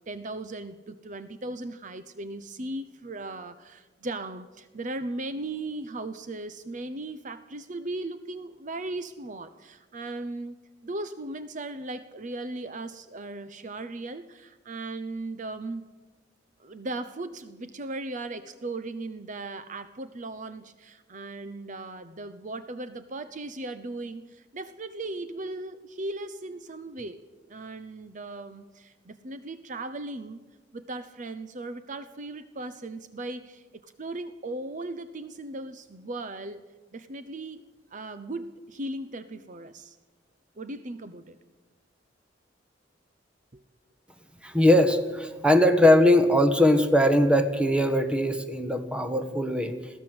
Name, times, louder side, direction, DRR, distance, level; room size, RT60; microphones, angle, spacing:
voice 1, 0.1-10.5 10.8-16.0 16.6-30.4 30.7-37.7 37.9-40.0 40.6-41.4 43.5-43.6, right 2 dB, 45° right, 11 dB, 0.8 m, -37 dB
voice 2, 44.4-49.7, left 1 dB, 5° right, 7 dB, 1.6 m, -21 dB
22.0 x 16.0 x 7.8 m, 1.2 s
head